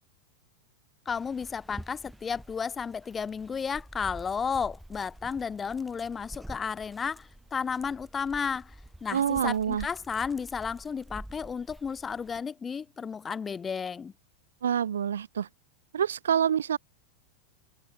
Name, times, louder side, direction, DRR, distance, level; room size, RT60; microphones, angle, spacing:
voice 1, 1.1-8.7 9.0-14.1, left 6 dB, 20° left, 0.5 m, -33 dB
Dog, 1.1-12.4, right 1 dB, ahead, 5.0 m, -48 dB
voice 2, 9.1-9.9 14.6-15.5 15.9-16.8, right 8 dB, 65° right, 0.6 m, -27 dB
figure-of-eight pair, 90°, 0 cm